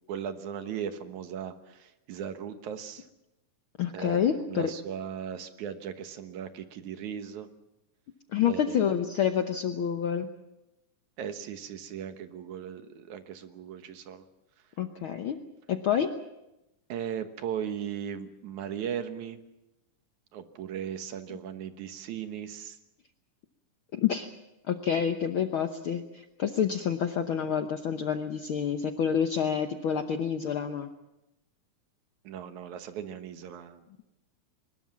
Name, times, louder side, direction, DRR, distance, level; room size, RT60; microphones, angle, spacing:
voice 1, 0.1-3.1 3.9-4.2 4.5-7.5 8.5-8.9 11.2-14.2 16.9-19.4 20.3-22.8 32.2-33.8, right 8 dB, 70° right, 9 dB, 2.6 m, -37 dB
voice 2, 3.8-4.7 8.3-10.3 14.8-15.4 15.7-16.1 23.9-24.3 24.6-30.9, left 8 dB, 70° left, 7 dB, 1.2 m, -28 dB
22.5 x 20.5 x 7.3 m, 0.92 s
omnidirectional pair, 3.6 m